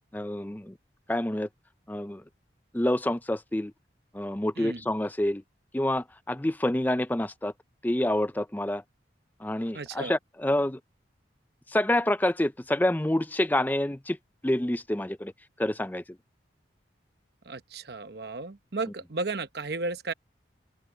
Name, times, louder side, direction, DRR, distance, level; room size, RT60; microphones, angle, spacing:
voice 1, 0.1-0.7 1.1-1.5 1.9-2.2 2.7-3.7 4.1-5.4 5.7-7.5 7.8-8.8 9.4-10.8 11.7-14.2 14.4-15.3 15.6-16.0, left 1 dB, 10° left, 0.5 m, -27 dB
voice 2, 9.7-10.1 17.4-20.1, right 3 dB, 60° right, 0.9 m, -34 dB
open air
head